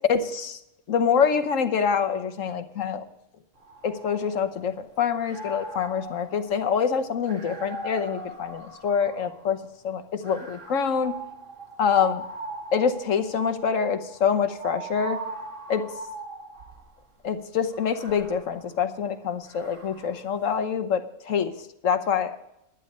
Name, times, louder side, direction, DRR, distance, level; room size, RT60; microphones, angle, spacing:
voice 1, 0.1-0.6 0.9-3.0 3.8-9.6 9.8-11.1 11.8-12.2 12.7-15.2 15.7-15.8 17.2-21.5 21.8-22.4, left 6 dB, 75° left, 9 dB, 1.4 m, -25 dB
sound 1, 3.6-4.8 5.2-9.5 10.2-16.9 17.7-20.3, right 2 dB, 65° right, 2.4 m, -40 dB
11.5 x 10.5 x 5.4 m, 0.83 s
omnidirectional pair, 1.4 m